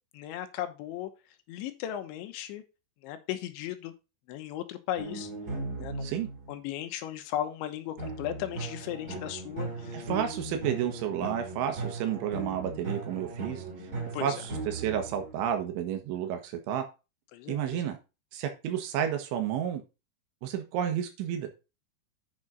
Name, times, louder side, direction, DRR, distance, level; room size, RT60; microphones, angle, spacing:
voice 1, 0.1-1.1 1.5-2.6 3.0-3.9 4.3-5.3 5.8-6.1 6.5-10.1 14.1-14.4 17.3-17.9, left 12 dB, 80° left, 8 dB, 3.3 m, -36 dB
sound 1, 5.0-6.6 8.0-15.7, right 3 dB, 35° right, 1.5 m, -38 dB
voice 2, 9.9-13.6 14.2-16.8 17.5-18.0 18.3-19.8 20.4-21.5, right 9 dB, 90° right, 5 dB, 3.7 m, -31 dB
8.7 x 6.2 x 4.0 m, 0.28 s
omnidirectional pair, 5.3 m